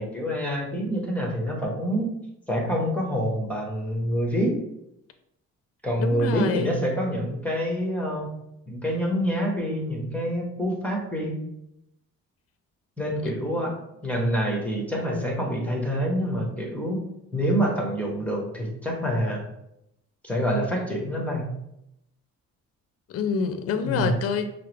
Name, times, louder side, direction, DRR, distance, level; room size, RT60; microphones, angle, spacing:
voice 1, 0.0-2.1 2.5-4.6 5.8-8.3 8.7-11.4 13.0-13.7 14.0-17.0 17.3-19.4 20.2-21.5 23.8-24.1, equal, 5° left, -1 dB, 1.1 m, -26 dB
voice 2, 6.0-6.8 13.2-13.3 23.1-24.5, left 6 dB, 50° left, 8 dB, 0.5 m, -27 dB
5.4 x 2.0 x 3.3 m, 0.81 s
cardioid pair, 90°, 30 cm